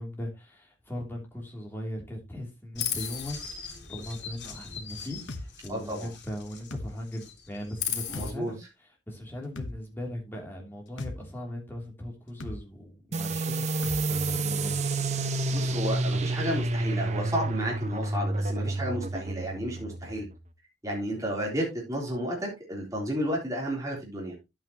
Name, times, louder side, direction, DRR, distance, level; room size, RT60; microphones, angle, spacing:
voice 1, 0.0-14.8 21.0-21.1, left 1 dB, 10° left, 3.0 m, -39 dB
Chirp tweet, 2.7-6.8 7.1-8.3, left 8 dB, 65° left, 3.6 m, -37 dB
sound 1, 5.3-5.5 6.7-6.9 8.1-8.3 9.6-9.8 11.0-11.2 12.4-12.6 13.8-14.0, left 2 dB, 90° left, 1.2 m, -36 dB
voice 2, 5.7-6.1 8.1-8.5 15.5-20.3 20.8-24.4, equal, 20° right, 3.5 m, -32 dB
sound 2, 13.1-20.4, right 2 dB, 40° right, 0.8 m, -29 dB
10.5 x 8.9 x 3.0 m
head